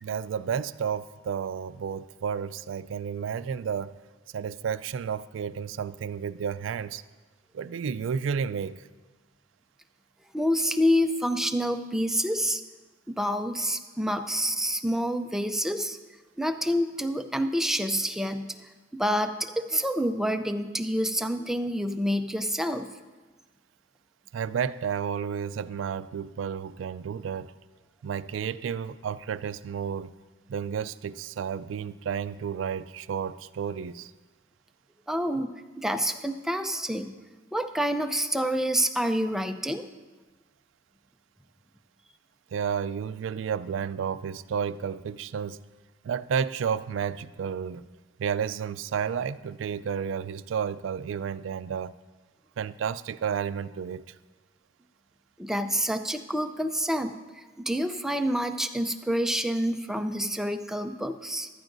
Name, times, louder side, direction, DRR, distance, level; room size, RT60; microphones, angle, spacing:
voice 1, 0.0-3.9 4.3-7.0 7.5-8.8 24.3-27.5 28.0-30.1 30.5-34.1 42.5-45.6 46.0-47.9 48.2-51.9 52.6-54.1, right 7 dB, 85° right, 15 dB, 0.3 m, -31 dB
voice 2, 10.3-12.6 13.1-16.0 16.4-18.7 19.0-22.9 35.1-35.5 35.8-37.1 37.5-39.8 55.4-61.5, equal, ahead, 7 dB, 0.5 m, -28 dB
15.0 x 11.5 x 2.6 m, 1.3 s
head